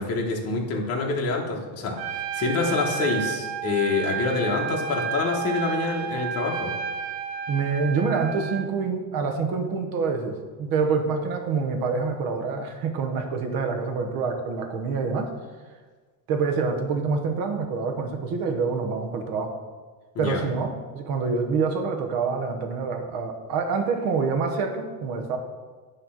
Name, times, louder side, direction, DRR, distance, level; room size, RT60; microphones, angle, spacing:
voice 1, 0.0-6.7 20.1-20.4, left 3 dB, 30° left, -1 dB, 1.2 m, -26 dB
Trumpet, 2.0-8.7, right 7 dB, 80° right, 0.8 m, -31 dB
voice 2, 7.5-15.3 16.3-19.6 20.2-25.4, right 5 dB, 45° right, 4 dB, 1.0 m, -26 dB
9.5 x 3.3 x 5.8 m, 1.4 s
cardioid pair, 145°, 47 cm